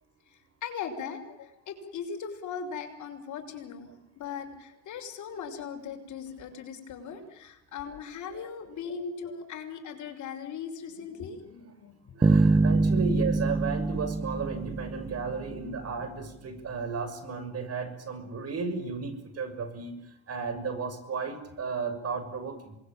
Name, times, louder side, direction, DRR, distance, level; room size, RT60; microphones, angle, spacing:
voice 1, 0.6-12.2 12.6-13.4 15.5-15.8, left 6 dB, 55° left, 5 dB, 6.3 m, -39 dB
voice 2, 12.1-19.9 20.3-22.8, right 5 dB, 40° right, 9 dB, 6.7 m, -34 dB
sound 1, 12.2-15.6, right 3 dB, 15° right, 1.3 m, -25 dB
27.0 x 21.0 x 9.0 m, 0.84 s
supercardioid pair, 80°, 36 cm